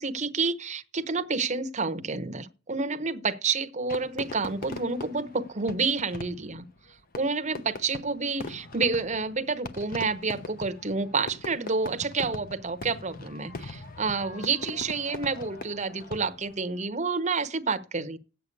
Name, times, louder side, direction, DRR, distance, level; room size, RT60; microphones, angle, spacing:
voice 1, 0.0-6.6 7.2-18.2, right 4 dB, 30° right, 0.9 m, -29 dB
Fireworks, 3.9-16.6, left 2 dB, 40° left, 0.9 m, -41 dB
8.4 x 7.8 x 8.4 m
head